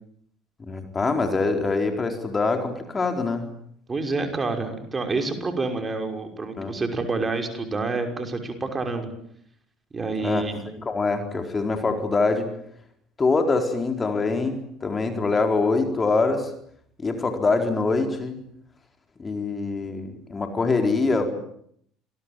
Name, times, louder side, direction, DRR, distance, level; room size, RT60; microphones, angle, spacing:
voice 1, 0.6-3.5 6.6-6.8 10.2-10.4 10.8-12.5 13.2-16.5 17.0-18.4 19.2-21.3, left 3 dB, 25° left, 5 dB, 4.3 m, -24 dB
voice 2, 3.9-9.1 9.9-10.6, right 3 dB, 25° right, 5 dB, 5.8 m, -28 dB
27.0 x 21.5 x 9.0 m, 0.69 s
figure-of-eight pair, 60°, 0 cm